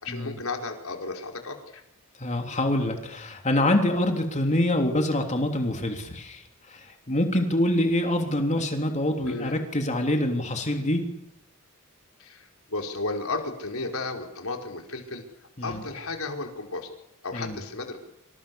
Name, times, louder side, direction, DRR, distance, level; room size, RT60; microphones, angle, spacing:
voice 1, 0.0-1.8 9.3-9.5 12.2-15.2 15.6-16.9 17.2-18.0, left 3 dB, 70° left, 4 dB, 4.8 m, -33 dB
voice 2, 2.2-11.1 15.6-15.8 17.3-17.6, left 1 dB, 35° left, 4 dB, 3.3 m, -25 dB
27.5 x 27.0 x 7.1 m, 0.82 s
head